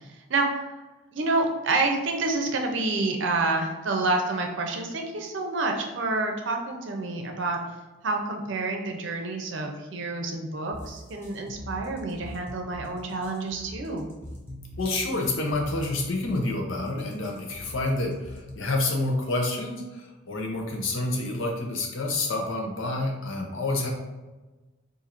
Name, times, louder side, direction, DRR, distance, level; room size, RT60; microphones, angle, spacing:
voice 1, 1.1-7.6 8.0-14.1, right 3 dB, 65° right, 3 dB, 0.6 m, -28 dB
sound 1, 10.7-18.7, left 1 dB, 10° left, 0.5 m, -42 dB
voice 2, 14.8-23.9, left 2 dB, 80° left, 1 dB, 0.7 m, -28 dB
4.3 x 2.6 x 2.5 m, 1.2 s
head